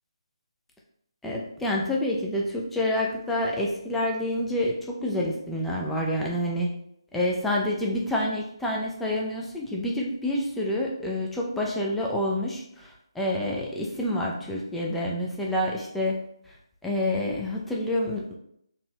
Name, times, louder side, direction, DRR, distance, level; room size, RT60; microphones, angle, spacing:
voice 1, 1.2-6.7 7.1-16.2 16.5-16.6 16.8-18.4, left 1 dB, 5° left, -3 dB, 0.4 m, -28 dB
4.0 x 2.8 x 2.2 m, 0.73 s
figure-of-eight pair, 155°, 3 cm